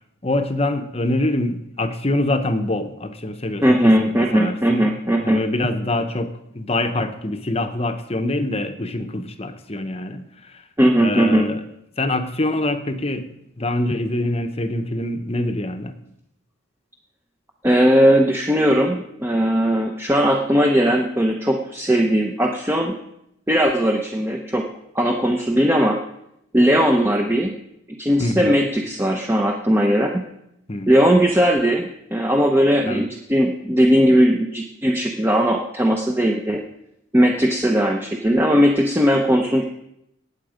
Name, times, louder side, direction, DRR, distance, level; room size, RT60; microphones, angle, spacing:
voice 1, 0.2-10.6 11.0-11.6 12.0-13.3 13.6-15.9 28.2-28.6 30.7-30.9 32.9-33.1, left 1 dB, 30° left, 8 dB, 0.9 m, -25 dB
voice 2, 3.6-5.4 10.8-11.5 17.6-22.9 23.5-24.7 24.9-26.0 26.5-27.5 28.0-30.2 30.9-36.6 37.1-39.6, equal, 10° right, 2 dB, 0.8 m, -18 dB
18.5 x 8.3 x 5.1 m, 0.80 s
head